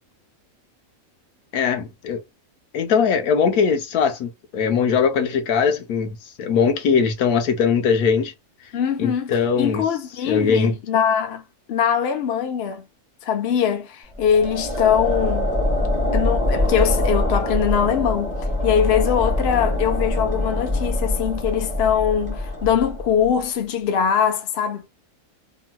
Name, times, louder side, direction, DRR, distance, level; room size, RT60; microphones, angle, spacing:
voice 1, 1.5-2.2 2.7-8.3 9.0-9.8 10.3-10.8, left 6 dB, 85° left, 1.2 m, -20 dB
voice 2, 8.7-11.4 11.7-12.8 13.2-15.5 16.1-18.4 18.6-24.9, left 8 dB, 55° left, 0.8 m, -22 dB
sound 1, 14.1-23.4, left 1 dB, 5° right, 1.2 m, -24 dB
3.0 x 2.8 x 2.2 m
omnidirectional pair, 1.6 m